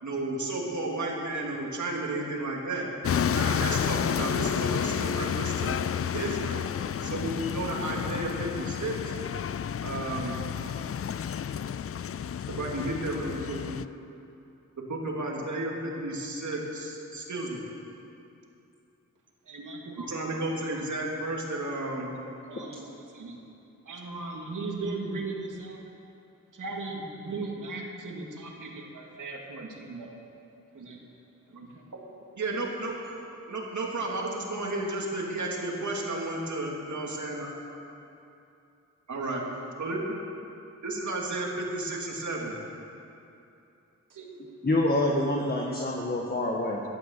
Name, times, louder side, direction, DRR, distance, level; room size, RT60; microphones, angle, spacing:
voice 1, 0.0-2.9 3.3-5.8 6.1-6.6 7.0-9.2 9.8-10.4 12.5-13.8 14.8-17.6 20.1-22.1 32.4-32.9 33.5-37.5 39.1-39.4 39.8-40.2 40.8-42.6, right 2 dB, 70° right, -2 dB, 2.9 m, -32 dB
sound 1, 3.0-13.9, left 8 dB, 50° left, 0.4 m, -30 dB
voice 2, 19.5-20.7 22.5-23.4 23.9-25.8 26.5-30.2 30.7-31.0 31.5-31.7 44.1-44.3, right 3 dB, 85° right, 0 dB, 2.3 m, -38 dB
voice 3, 44.6-46.8, left 1 dB, 30° left, -1 dB, 1.6 m, -26 dB
14.0 x 12.5 x 7.5 m, 2.7 s
cardioid pair, 65°, 31 cm